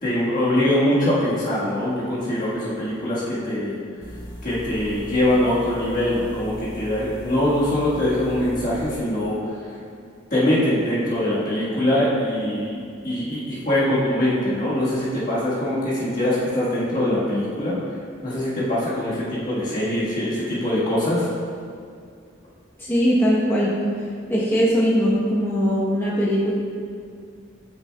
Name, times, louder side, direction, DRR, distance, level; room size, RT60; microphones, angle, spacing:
voice 1, 0.0-3.8 4.4-9.4 10.3-12.8 13.0-17.8 18.2-21.3, left 1 dB, 40° left, -9 dB, 1.4 m, -23 dB
sound 1, 4.0-9.0, equal, 65° left, 1.3 m, -38 dB
voice 2, 22.8-23.7 24.3-26.5, equal, 10° left, -7 dB, 0.8 m, -20 dB
9.2 x 6.2 x 2.2 m, 2.3 s
head